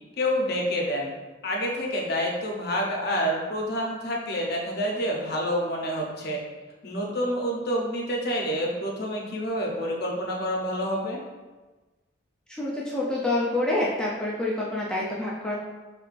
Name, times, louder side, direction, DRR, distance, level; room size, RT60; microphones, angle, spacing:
voice 1, 0.2-1.1 1.4-6.4 6.8-11.2, equal, 50° left, -1 dB, 0.7 m, -28 dB
voice 2, 12.5-15.5, left 2 dB, 5° left, -6 dB, 0.5 m, -27 dB
4.9 x 3.4 x 2.5 m, 1.2 s
head